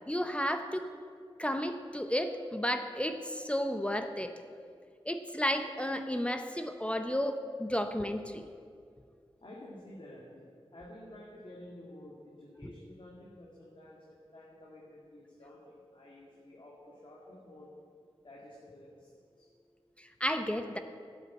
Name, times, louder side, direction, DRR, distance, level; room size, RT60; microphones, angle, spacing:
voice 1, 0.1-0.8 1.4-4.3 5.1-8.4 12.6-12.7 20.2-20.8, equal, 10° left, 7 dB, 0.7 m, -32 dB
voice 2, 9.4-17.7 18.2-19.5, left 1 dB, 55° left, -4 dB, 2.2 m, -51 dB
11.5 x 8.5 x 8.3 m, 2.2 s
wide cardioid pair, 80°, 10 cm